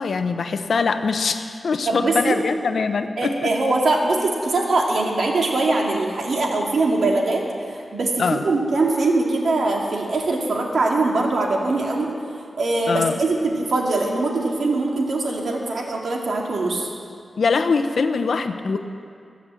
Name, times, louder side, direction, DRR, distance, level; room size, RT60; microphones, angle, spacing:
voice 1, 0.0-3.5 8.2-8.4 12.9-13.1 17.4-18.8, left 4 dB, 75° left, 8 dB, 0.8 m, -22 dB
voice 2, 1.9-2.4 3.2-16.9, right 2 dB, 75° right, 0 dB, 2.3 m, -22 dB
22.0 x 7.3 x 7.6 m, 2.3 s
wide cardioid pair, 120°, 0 cm